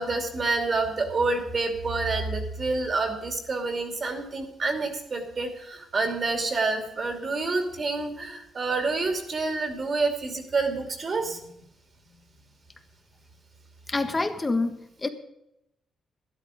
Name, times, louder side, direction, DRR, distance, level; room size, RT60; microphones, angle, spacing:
voice 1, 0.0-11.5, right 3 dB, 35° right, 6 dB, 2.7 m, -28 dB
voice 2, 13.9-15.1, left 3 dB, 20° left, 8 dB, 1.4 m, -27 dB
12.5 x 12.0 x 5.1 m, 0.82 s
cardioid pair, 120°, 0 cm